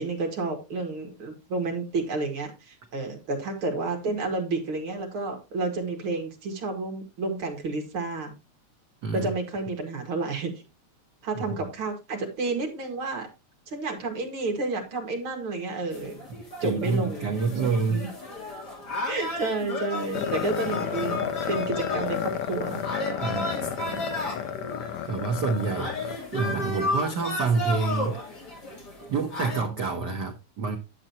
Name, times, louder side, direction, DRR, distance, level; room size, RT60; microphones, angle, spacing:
voice 1, 0.0-8.3 9.1-10.5 11.2-13.3 13.7-16.2 16.6-17.4 17.9-18.1 19.1-22.8, right 3 dB, 50° right, 2.5 m, -30 dB
sound 1, 15.9-29.6, left 2 dB, 35° left, 3.4 m, -34 dB
voice 2, 16.6-18.0 23.2-24.4 25.1-28.4 29.1-30.8, right 4 dB, 85° right, 0.9 m, -28 dB
sound 2, 20.1-26.6, left 9 dB, 75° left, 1.7 m, -32 dB
10.5 x 7.5 x 2.9 m
omnidirectional pair, 3.3 m